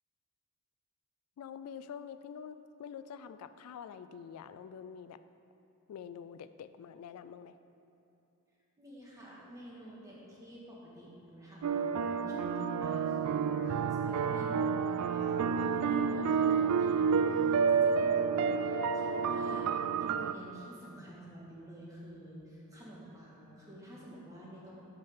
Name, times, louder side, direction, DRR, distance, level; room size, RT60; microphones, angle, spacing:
voice 1, 1.4-5.2 5.9-7.6, left 7 dB, 75° left, 14 dB, 0.3 m, -46 dB
voice 2, 8.8-24.7, equal, 15° right, -6 dB, 1.6 m, -49 dB
sound 1, 11.6-20.3, right 6 dB, 75° right, 0.3 m, -29 dB
13.0 x 5.5 x 3.6 m, 2.8 s
head